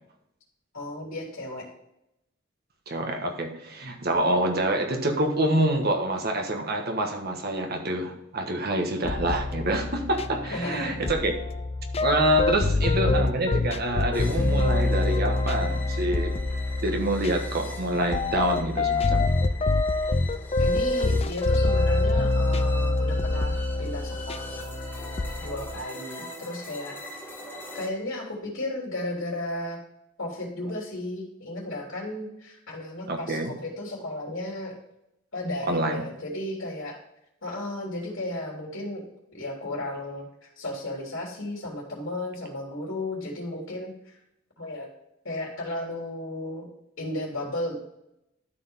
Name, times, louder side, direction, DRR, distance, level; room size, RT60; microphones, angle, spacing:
voice 1, 0.7-1.7 10.4-11.0 20.6-24.4 25.4-27.3 27.7-29.8 30.2-34.7 35.3-37.0 37.4-39.0 39.3-44.2 44.6-44.9 45.2-46.7 47.0-47.7, left 1 dB, 80° left, -3 dB, 3.2 m, -34 dB
voice 2, 2.9-11.3 12.0-16.4 16.8-19.3 33.1-33.5 35.7-36.0, right 1 dB, 55° right, 3 dB, 1.4 m, -26 dB
sound 1, 9.0-25.8, left 2 dB, 30° left, 0.4 m, -26 dB
sound 2, 14.1-27.9, left 1 dB, 10° left, 1.8 m, -42 dB
13.0 x 4.8 x 3.5 m, 0.83 s
head